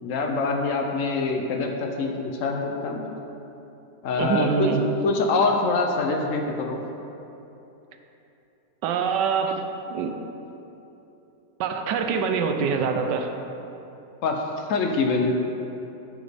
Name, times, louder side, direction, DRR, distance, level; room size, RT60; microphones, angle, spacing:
voice 1, 0.0-3.0 4.0-4.7 5.0-6.8 14.2-15.3, left 3 dB, 65° left, 2 dB, 0.9 m, -25 dB
voice 2, 4.2-4.8 8.8-9.6 9.9-10.1 11.6-13.3, right 6 dB, 80° right, 6 dB, 1.2 m, -24 dB
10.5 x 5.1 x 3.4 m, 3.0 s
omnidirectional pair, 1.8 m